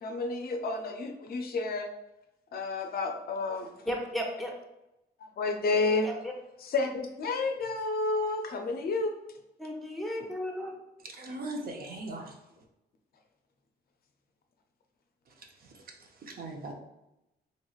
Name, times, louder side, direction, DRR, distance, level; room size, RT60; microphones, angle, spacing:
voice 1, 0.0-1.9 2.5-3.7 5.2-6.1 6.6-9.1, left 3 dB, 60° left, 4 dB, 0.4 m, -30 dB
voice 2, 3.9-4.5 6.0-6.3 9.6-10.7, equal, ahead, 0 dB, 0.7 m, -34 dB
voice 3, 11.1-12.4 15.3-16.7, right 2 dB, 55° right, 1 dB, 0.6 m, -40 dB
3.0 x 2.9 x 2.4 m, 0.90 s
cardioid pair, 85°, 18 cm